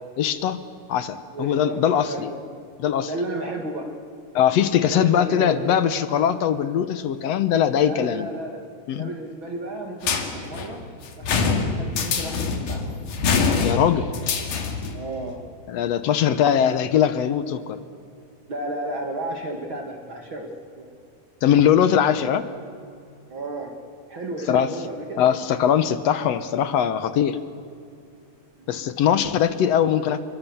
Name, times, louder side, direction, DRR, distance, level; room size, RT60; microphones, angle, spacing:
voice 1, 0.2-2.3 2.8-3.1 4.3-8.3 8.9-9.1 13.6-14.1 15.7-17.8 21.4-22.5 24.5-24.7 25.2-27.4 28.7-30.2, left 9 dB, 65° left, 12 dB, 1.8 m, -21 dB
voice 2, 1.3-2.4 3.1-3.9 4.9-5.7 7.8-8.6 9.0-10.8 11.2-12.9 14.9-15.4 18.5-20.5 20.8-20.9 23.3-23.7 24.1-25.2 28.6-28.8, right 1 dB, 45° right, 2 dB, 2.5 m, -33 dB
sound 1, 10.0-15.0, left 5 dB, 85° left, 3.6 m, -24 dB
28.0 x 23.5 x 7.2 m, 2.5 s
omnidirectional pair, 3.6 m